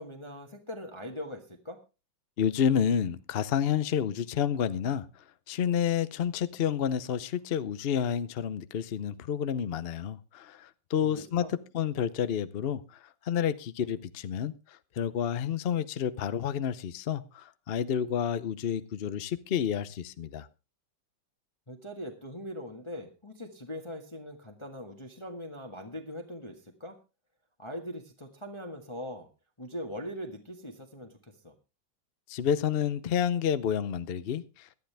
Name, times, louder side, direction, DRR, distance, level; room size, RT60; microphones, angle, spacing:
voice 1, 0.0-1.8 11.0-11.5 21.7-27.0 27.6-29.3 29.6-31.5, equal, 15° left, 3 dB, 1.5 m, -41 dB
voice 2, 2.4-5.0 5.5-13.0 13.3-14.5 15.0-20.5 32.3-34.7, left 8 dB, 70° left, 15 dB, 0.5 m, -29 dB
18.0 x 12.0 x 3.4 m, 0.29 s
omnidirectional pair, 2.1 m